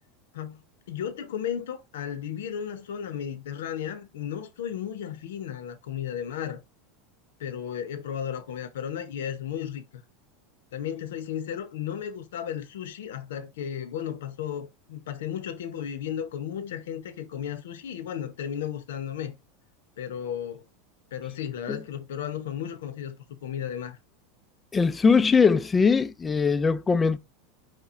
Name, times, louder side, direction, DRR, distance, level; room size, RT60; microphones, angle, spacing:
voice 1, 0.3-6.6 7.4-10.0 10.7-19.3 20.0-20.6 21.1-24.0, left 9 dB, 80° left, 0.7 m, -34 dB
voice 2, 24.7-27.2, left 5 dB, 20° left, 0.4 m, -21 dB
4.8 x 3.0 x 3.6 m
hypercardioid pair, 105°, 0 cm